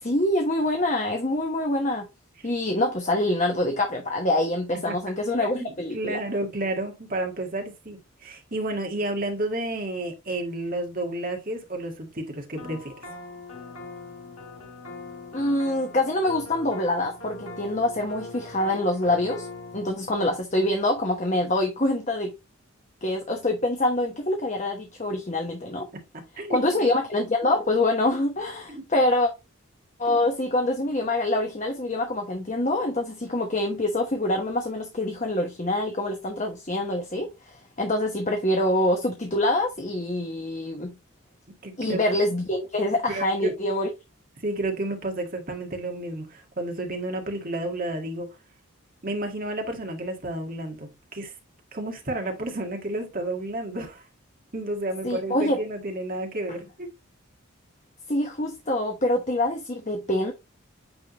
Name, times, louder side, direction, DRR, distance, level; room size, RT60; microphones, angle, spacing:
voice 1, 0.0-2.1 2.4-6.2 15.3-19.5 19.7-22.3 23.0-25.9 26.5-29.3 30.0-40.9 41.8-43.9 55.0-55.6 58.1-60.3, left 1 dB, 35° left, 1.0 m, -25 dB
voice 2, 5.4-12.9 25.9-26.0 26.4-26.8 28.7-28.8 41.6-42.0 43.1-43.5 44.4-48.3 49.0-51.3 51.7-54.1 54.5-56.9, right 1 dB, 40° right, 1.7 m, -31 dB
sound 1, 12.6-19.9, left 2 dB, 90° left, 2.1 m, -41 dB
8.8 x 3.7 x 2.9 m
head